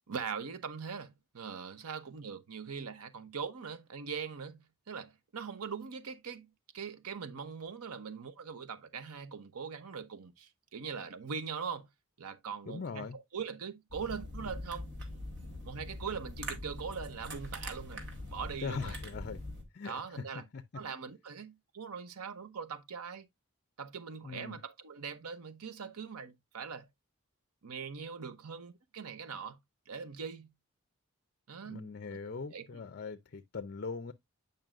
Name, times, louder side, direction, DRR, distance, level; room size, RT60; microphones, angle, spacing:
voice 1, 0.1-6.5 6.7-11.9 12.2-14.9 15.6-19.0 19.8-20.5 20.7-23.3 23.8-26.9 27.6-29.6 29.9-30.5 31.5-31.9 32.3-32.8, right 6 dB, 85° right, 0.8 m, -41 dB
voice 2, 12.7-13.2 18.6-19.4 19.7-19.9 20.5-20.6 24.2-24.6 31.7-34.1, left 4 dB, 45° left, 0.5 m, -40 dB
sound 1, 13.9-19.6, left 1 dB, 50° right, 2.2 m, -43 dB
9.0 x 5.3 x 2.4 m
head